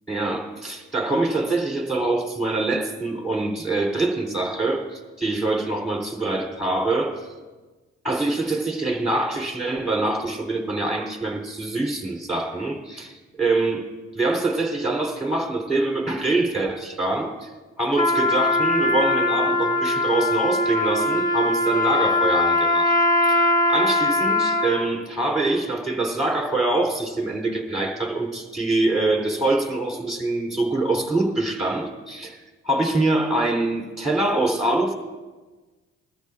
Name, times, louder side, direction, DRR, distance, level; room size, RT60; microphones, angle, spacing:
voice 1, 0.1-7.2 8.0-13.8 14.1-17.5 17.8-22.9 23.2-32.4 32.6-34.9, right 2 dB, ahead, 0 dB, 3.4 m, -24 dB
Trumpet, 17.9-24.9, left 2 dB, 25° left, 1.4 m, -21 dB
21.0 x 13.5 x 2.5 m, 1.3 s
cardioid pair, 90°, 30 cm